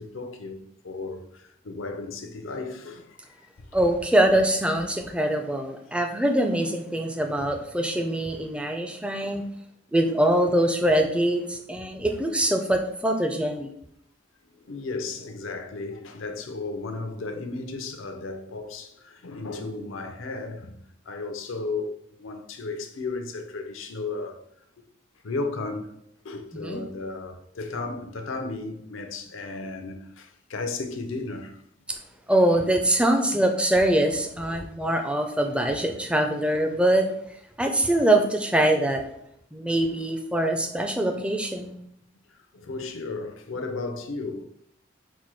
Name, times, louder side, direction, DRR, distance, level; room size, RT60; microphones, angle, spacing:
voice 1, 0.0-3.2 3.6-3.7 9.2-9.3 14.7-24.4 25.2-25.9 26.2-31.6 34.5-34.7 41.6-41.7 42.5-44.4, left 3 dB, 80° left, 0.6 m, -34 dB
voice 2, 3.7-9.4 9.9-13.7 26.5-26.8 31.9-32.0 32.3-37.1 37.6-39.0 39.5-41.8, right 1 dB, 5° right, 0.4 m, -23 dB
4.3 x 2.2 x 4.6 m
head